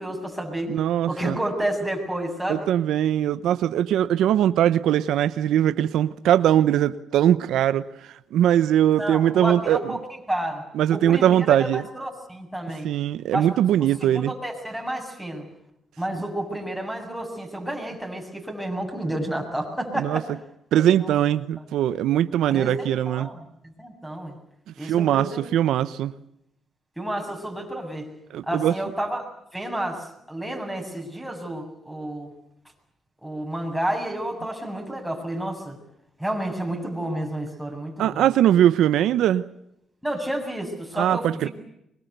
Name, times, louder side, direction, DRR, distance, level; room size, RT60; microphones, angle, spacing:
voice 1, 0.0-0.7 1.1-2.7 9.0-10.6 10.9-12.9 13.3-13.5 14.0-15.4 16.0-20.3 21.0-21.1 22.5-23.5 23.8-24.4 24.8-25.4 27.0-28.1 28.5-29.2 29.5-32.3 33.2-35.8 36.2-38.3 40.0-41.5, right 1 dB, ahead, 1 dB, 7.6 m, -30 dB
voice 2, 0.7-1.4 2.5-7.8 8.3-10.0 10.7-11.8 12.8-14.3 20.0-20.2 20.7-23.3 24.8-26.1 28.3-28.7 38.0-39.5 40.9-41.5, right 11 dB, 80° right, 13 dB, 0.9 m, -21 dB
24.0 x 23.5 x 8.2 m, 0.79 s
cardioid pair, 90°, 0 cm